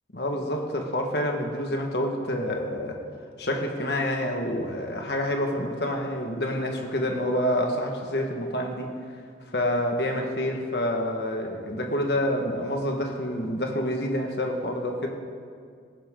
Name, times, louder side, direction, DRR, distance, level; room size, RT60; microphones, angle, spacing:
voice 1, 0.1-3.0 3.4-8.9 9.5-15.1, left 1 dB, 65° left, 2 dB, 1.6 m, -28 dB
18.0 x 14.5 x 3.8 m, 2.1 s
head